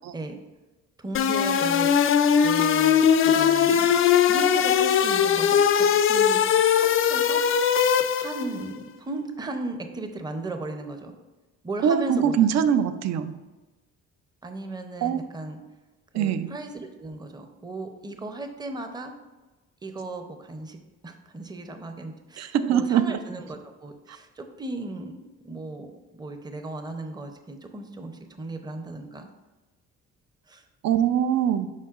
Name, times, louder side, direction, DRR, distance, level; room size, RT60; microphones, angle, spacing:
voice 1, 1.0-1.9 2.4-4.0 4.3-6.4 6.8-7.4 8.2-11.1 11.6-12.5 14.4-15.6 16.1-19.1 19.8-20.8 21.0-25.1 25.4-29.3 30.5-30.6, right 2 dB, 15° right, 6 dB, 0.6 m, -36 dB
sound 1, 1.1-8.6, left 8 dB, 45° left, 0.4 m, -20 dB
voice 2, 11.8-13.4 15.0-15.4 16.1-16.5 22.4-23.2 24.1-24.2 30.8-31.7, right 8 dB, 60° right, 11 dB, 0.5 m, -23 dB
7.4 x 5.3 x 2.4 m, 1.2 s
cardioid pair, 90°, 30 cm